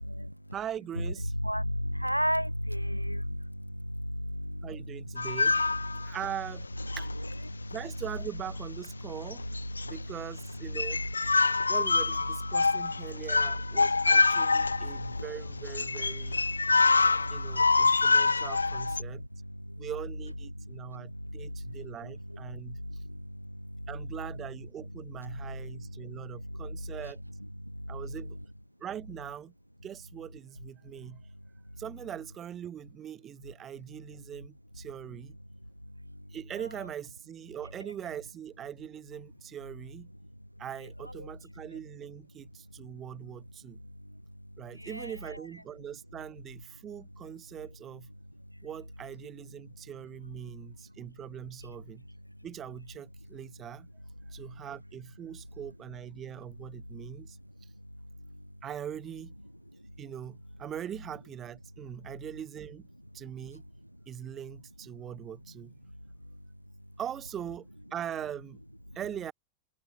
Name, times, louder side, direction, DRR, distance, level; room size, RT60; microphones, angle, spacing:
voice 1, 0.0-0.4 1.0-1.1 1.4-4.7 5.9-6.1 7.5-7.7 9.9-10.0 11.4-11.7 12.5-13.3 13.7-15.2 16.3-18.5 19.0-19.8 20.6-23.9 25.3-27.1 27.6-28.0 36.1-36.3 41.0-41.3 44.0-44.2 44.7-45.4 58.3-58.4 59.7-59.9, equal, 90° right, 0.7 m, -36 dB
voice 2, 0.5-1.3 4.6-5.6 6.0-6.7 7.0-7.1 7.7-9.4 9.8-11.0 11.7-16.4 17.3-19.2 19.8-22.8 23.9-27.2 27.9-28.4 28.8-29.5 29.8-31.2 31.8-35.4 36.3-40.1 40.6-43.8 44.6-48.1 48.6-52.0 52.4-53.9 54.3-57.4 58.6-59.3 60.0-62.9 63.1-63.6 64.1-65.7 67.0-68.6 68.9-69.3, right 10 dB, 25° right, 2.8 m, -41 dB
sound 1, 5.2-6.3 6.8-7.3 7.7-7.8 8.8-9.0 9.3-10.1 10.4-10.5 10.8-19.0, left 4 dB, 80° left, 0.3 m, -26 dB
figure-of-eight pair, 90°, 0 cm